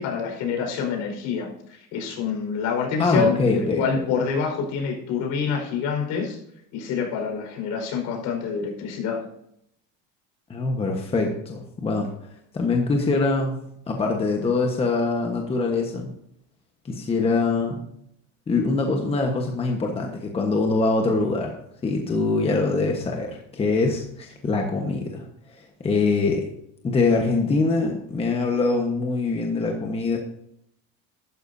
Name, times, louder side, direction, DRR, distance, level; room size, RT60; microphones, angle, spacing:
voice 1, 0.0-6.4 6.7-9.3, left 6 dB, 60° left, 2 dB, 5.0 m, -27 dB
voice 2, 3.0-4.1 10.5-12.1 12.5-13.5 13.9-16.1 16.8-17.8 18.5-21.5 21.8-25.2 25.8-26.4 26.8-30.2, left 3 dB, 15° left, 2 dB, 1.3 m, -23 dB
14.5 x 12.5 x 2.8 m, 0.75 s
cardioid pair, 155°, 34 cm